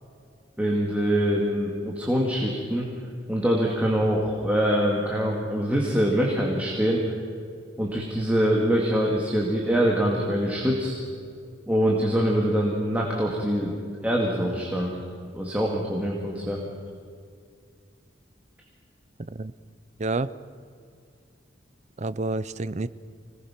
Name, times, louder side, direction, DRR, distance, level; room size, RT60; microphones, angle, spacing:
voice 1, 0.6-2.9 3.3-7.0 7.8-10.9 11.7-13.8 14.0-14.9 15.3-16.6, equal, 10° right, -2 dB, 2.3 m, -24 dB
voice 2, 19.2-19.5 20.0-20.3 22.0-22.9, right 2 dB, 40° right, 16 dB, 0.6 m, -29 dB
25.5 x 19.0 x 5.9 m, 2.3 s
head